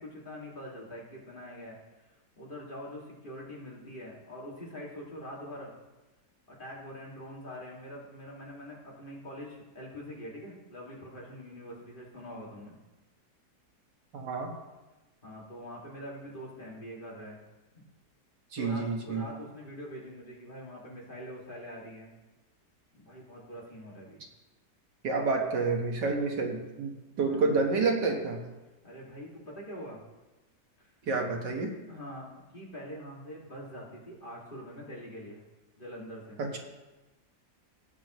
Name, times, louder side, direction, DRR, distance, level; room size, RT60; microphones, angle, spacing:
voice 1, 0.0-1.8 2.4-5.8 6.5-12.8 15.2-17.4 18.6-22.1 22.9-24.2 27.2-27.6 28.8-30.0 30.8-30.9 31.9-35.4 35.8-36.4, equal, 30° left, -5 dB, 2.4 m, -44 dB
voice 2, 14.1-14.5 18.5-19.2 25.0-26.9 27.2-28.4 31.1-31.7 36.4-36.6, right 4 dB, 80° right, 2 dB, 2.1 m, -29 dB
16.5 x 9.1 x 3.1 m, 1.1 s
omnidirectional pair, 1.8 m